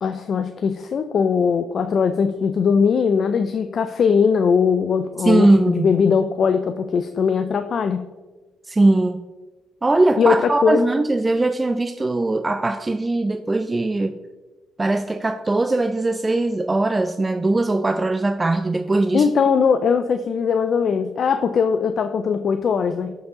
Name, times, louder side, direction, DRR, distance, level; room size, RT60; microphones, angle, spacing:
voice 1, 0.0-8.1 10.2-10.9 19.1-23.2, left 6 dB, 55° left, 9 dB, 0.4 m, -20 dB
voice 2, 5.2-6.0 8.7-9.2 9.8-14.2 14.8-19.3, right 2 dB, 20° right, 7 dB, 0.4 m, -20 dB
12.0 x 4.8 x 3.8 m, 1.2 s
cardioid pair, 90°, 0 cm